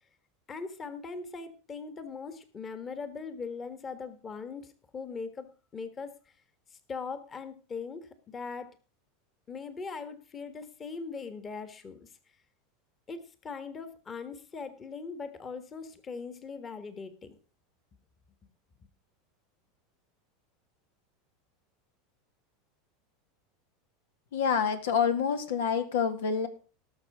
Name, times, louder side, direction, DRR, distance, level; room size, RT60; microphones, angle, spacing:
voice 1, 0.5-6.2 6.7-8.7 9.5-12.1 13.1-17.4, left 4 dB, 25° left, 10 dB, 1.5 m, -40 dB
voice 2, 24.3-26.5, left 6 dB, 85° left, 9 dB, 2.1 m, -27 dB
18.5 x 6.9 x 4.9 m, 0.35 s
supercardioid pair, 135°, 0 cm